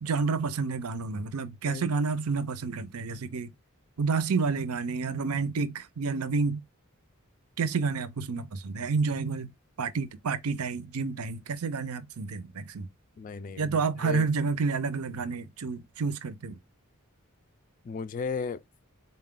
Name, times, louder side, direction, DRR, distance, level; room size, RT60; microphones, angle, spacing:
voice 1, 0.0-3.5 4.0-6.6 7.6-9.5 9.8-12.9 13.6-16.6, right 4 dB, 85° right, 0.6 m, -29 dB
voice 2, 13.2-14.3 17.8-18.6, left 5 dB, 40° left, 0.3 m, -35 dB
4.0 x 2.2 x 3.6 m
head